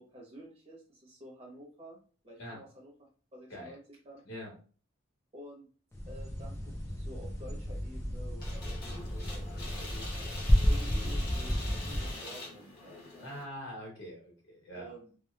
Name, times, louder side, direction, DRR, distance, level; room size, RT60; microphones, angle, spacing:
voice 1, 0.0-2.0 2.2-4.2 5.3-5.7 6.1-10.1 10.7-13.3 14.7-15.1, right 1 dB, 30° right, -3 dB, 0.8 m, -51 dB
sound 1, 5.9-12.1, equal, 10° left, 0.4 m, -31 dB
sound 2, 8.4-13.4, left 2 dB, 45° left, 0.9 m, -44 dB
voice 2, 13.2-14.9, equal, 65° left, -2 dB, 1.2 m, -44 dB
2.8 x 2.1 x 2.2 m, 0.39 s
head